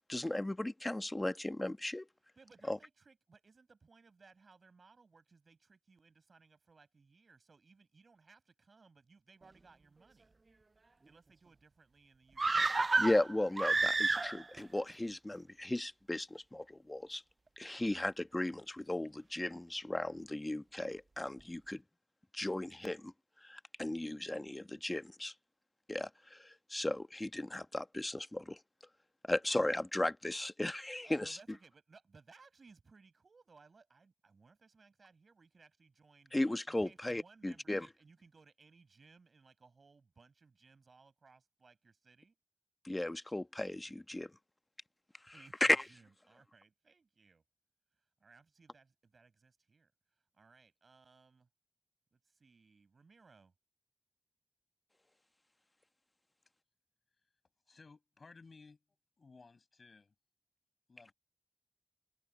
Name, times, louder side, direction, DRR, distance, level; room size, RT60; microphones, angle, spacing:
voice 1, 0.1-2.1 2.7-2.8 13.0-17.2 17.6-21.8 22.3-23.1 23.4-25.3 25.9-28.6 29.2-31.4 36.3-37.9 42.8-44.3 45.6-45.8, left 1 dB, 30° left, 1.1 m, -36 dB
voice 2, 2.4-10.3 11.1-12.8 31.0-36.3 36.7-42.4 45.3-47.4 48.2-49.9 50.3-51.5 52.1-53.5, right 4 dB, 85° right, 7.4 m, -63 dB
sound 1, 12.4-14.6 14.9-15.0, right 3 dB, 60° right, 0.3 m, -30 dB
voice 3, 57.7-58.8 59.2-60.1 60.9-61.1, left 4 dB, 80° left, 7.8 m, -58 dB
cardioid pair, 40°, 0 cm